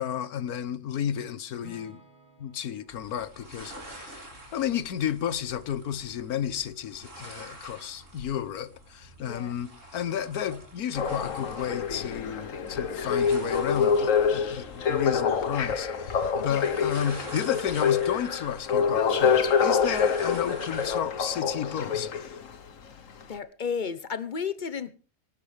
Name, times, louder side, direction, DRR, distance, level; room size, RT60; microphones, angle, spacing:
voice 1, 0.0-2.0 2.4-4.3 4.5-22.3, left 9 dB, 85° left, 1.5 m, -32 dB
Acoustic guitar / Strum, 1.6-5.6, left 1 dB, 35° right, 6.1 m, -56 dB
sound 1, 2.9-21.0, right 1 dB, 55° right, 4.7 m, -47 dB
voice 2, 9.2-9.5 16.4-16.8 23.3-24.9, left 6 dB, 35° left, 1.0 m, -33 dB
sound 2, 11.0-22.6 23.2-23.3, left 6 dB, 65° left, 1.5 m, -26 dB
24.5 x 12.0 x 3.4 m
omnidirectional pair, 1.5 m